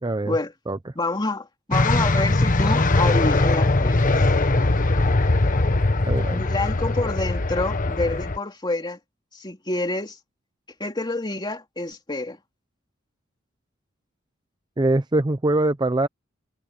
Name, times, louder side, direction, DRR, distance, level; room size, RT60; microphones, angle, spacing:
voice 1, 0.0-0.4 0.7-0.8 6.1-6.4 14.8-16.1, right 2 dB, 20° right, 0.6 m, -22 dB
voice 2, 0.9-4.3 6.3-9.0 9.3-10.2 10.8-12.4, left 2 dB, 20° left, 3.0 m, -27 dB
sound 1, 1.7-8.4, left 2 dB, 45° left, 1.2 m, -21 dB
head